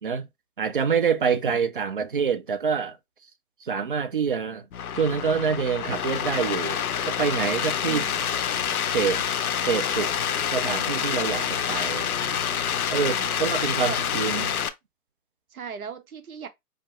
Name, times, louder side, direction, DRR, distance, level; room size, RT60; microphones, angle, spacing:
voice 1, 0.6-3.0 3.6-4.7 4.9-8.0 8.9-9.3 9.7-12.1 12.9-14.6, right 6 dB, 40° right, 0.4 m, -26 dB
sound 1, 4.7-14.7, left 8 dB, 65° left, 0.7 m, -27 dB
voice 2, 7.9-8.3 12.9-13.5 13.8-14.0 15.5-16.5, right 7 dB, 65° right, 0.7 m, -38 dB
sound 2, 8.1-14.5, equal, 25° left, 0.3 m, -46 dB
5.1 x 2.8 x 2.4 m
figure-of-eight pair, 140°, 46 cm